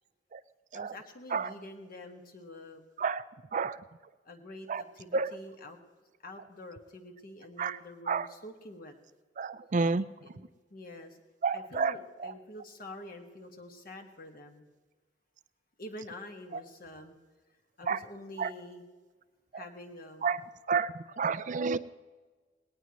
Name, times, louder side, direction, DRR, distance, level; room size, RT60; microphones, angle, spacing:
voice 1, 0.7-2.9 4.2-5.8 6.2-8.9 10.2-11.2 11.5-14.7 15.8-17.1 17.8-18.8 19.5-20.4, left 1 dB, 50° left, 4 dB, 1.8 m, -47 dB
voice 2, 9.4-10.1 11.4-12.0 17.9-18.0 18.4-18.5 20.2-20.4 20.7-21.8, right 5 dB, 45° right, 14 dB, 0.4 m, -29 dB
19.0 x 18.5 x 3.1 m, 1.4 s
head